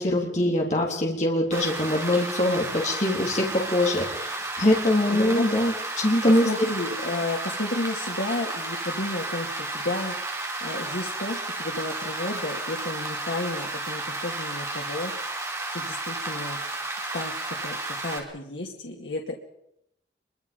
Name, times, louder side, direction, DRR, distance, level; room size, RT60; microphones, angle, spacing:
voice 1, 0.0-6.4, left 1 dB, 40° left, -1 dB, 3.8 m, -23 dB
Rain, 1.5-18.2, right 2 dB, 15° right, 4.3 m, -32 dB
voice 2, 5.1-5.4 6.2-10.2 10.6-15.1 15.7-16.6 17.1-19.4, left 2 dB, 85° left, 0 dB, 2.4 m, -32 dB
26.5 x 23.5 x 5.4 m, 0.80 s
head